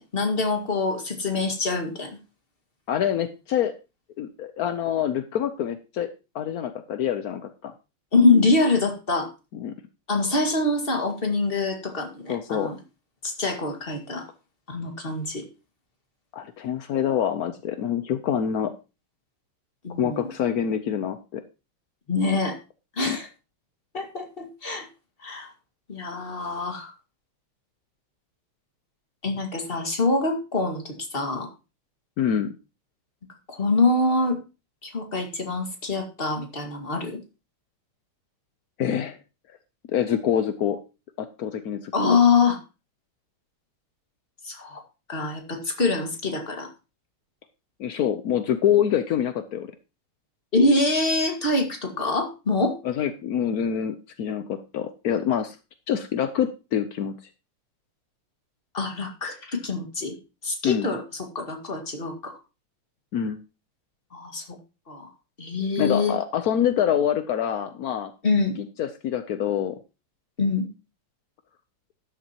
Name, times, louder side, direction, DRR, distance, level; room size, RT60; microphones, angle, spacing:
voice 1, 0.0-2.1 8.1-9.3 10.1-12.8 13.2-14.3 14.7-15.4 19.8-20.3 22.1-22.6 23.0-23.3 23.9-24.9 25.2-25.5 25.9-26.9 29.2-31.5 33.5-34.4 34.8-37.2 41.9-42.6 44.4-44.8 45.1-46.7 50.5-52.8 58.7-60.1 60.4-62.4 64.1-64.4 64.9-65.1 65.4-66.1 68.2-68.5 70.4-70.7, left 3 dB, 25° left, 3 dB, 2.1 m, -24 dB
voice 2, 2.9-3.7 4.2-6.1 6.3-7.7 9.5-9.7 12.3-12.8 16.3-18.7 20.0-21.4 23.0-23.2 32.2-32.5 38.8-39.2 39.9-40.8 41.2-42.2 47.8-49.7 52.8-55.6 55.9-57.1 60.6-61.0 63.1-63.4 65.8-68.1 68.6-69.8, left 9 dB, 65° left, 9 dB, 0.9 m, -26 dB
13.0 x 11.0 x 3.0 m, 0.30 s
omnidirectional pair, 2.4 m